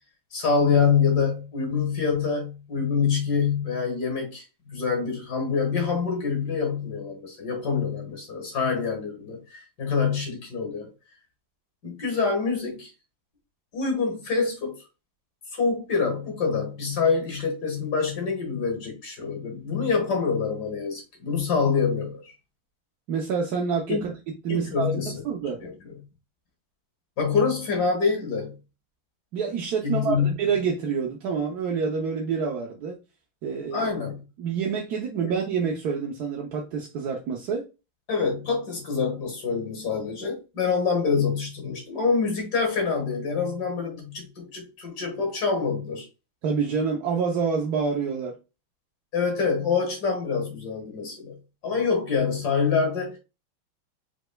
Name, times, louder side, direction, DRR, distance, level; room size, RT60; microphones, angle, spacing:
voice 1, 0.3-10.9 11.8-12.9 13.7-14.8 15.5-22.3 23.9-24.0 24.5-25.2 25.6-26.0 27.2-28.5 29.8-30.3 33.7-34.2 38.1-46.1 49.1-51.4 51.6-53.2, left 5 dB, 55° left, 2.0 m, -26 dB
voice 2, 23.1-24.1 24.4-25.6 29.3-33.0 33.4-33.9 34.4-37.7 46.4-48.4, right 5 dB, 60° right, 1.2 m, -27 dB
5.1 x 4.3 x 2.3 m
omnidirectional pair, 2.2 m